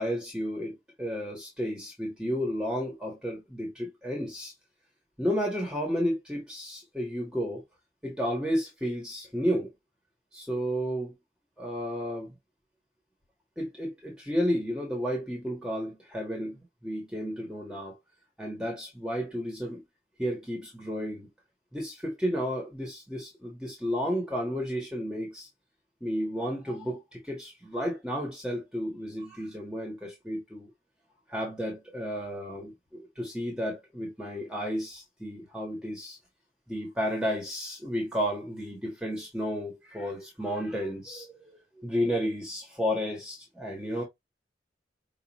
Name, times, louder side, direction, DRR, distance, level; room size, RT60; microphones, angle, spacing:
voice 1, 0.0-4.5 5.2-7.6 8.0-9.7 10.3-11.2 11.6-12.3 13.6-18.0 18.4-19.8 20.2-21.3 21.7-25.5 26.0-30.7 31.3-36.2 36.7-44.0, equal, 5° right, 1.4 m, -32 dB
5.7 x 2.6 x 3.0 m
head